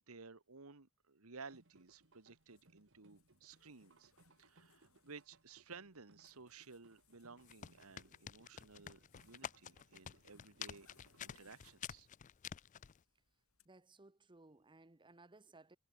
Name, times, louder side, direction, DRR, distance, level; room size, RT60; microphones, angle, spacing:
voice 1, 0.1-4.1 4.4-10.9 11.2-12.1, right 4 dB, 80° right, 1.6 m, -56 dB
Zipper (clothing), 1.5-13.7, left 6 dB, 80° left, 7.0 m, -76 dB
sound 1, 1.5-11.8, right 2 dB, 60° right, 2.0 m, -70 dB
sound 2, 7.4-13.0, left 9 dB, 35° left, 0.4 m, -49 dB
voice 2, 13.6-15.8, right 2 dB, 20° right, 1.0 m, -61 dB
head